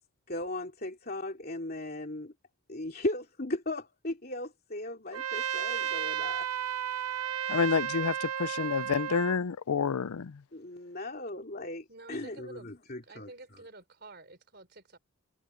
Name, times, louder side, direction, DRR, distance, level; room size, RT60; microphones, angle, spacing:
voice 1, 0.3-2.3 2.7-6.5 10.5-13.6, left 1 dB, 40° left, 2.9 m, -37 dB
Trumpet, 5.1-9.4, right 9 dB, 85° right, 0.9 m, -33 dB
voice 2, 7.5-10.4, left 5 dB, 85° left, 0.5 m, -29 dB
voice 3, 11.9-12.7 13.0-15.0, right 2 dB, 45° right, 4.7 m, -50 dB
head